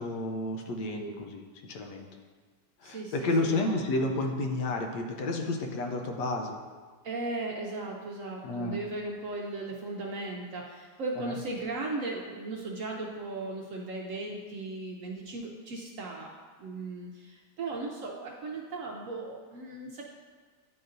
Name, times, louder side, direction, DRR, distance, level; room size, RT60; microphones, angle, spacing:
voice 1, 0.0-1.4 1.7-2.1 2.8-6.6 8.4-8.8 11.2-11.3, left 2 dB, 75° left, 3 dB, 1.3 m, -31 dB
voice 2, 2.8-3.8 7.0-16.3 16.6-20.0, right 2 dB, 65° right, -1 dB, 0.8 m, -37 dB
10.0 x 4.0 x 2.6 m, 1.5 s
omnidirectional pair, 1.8 m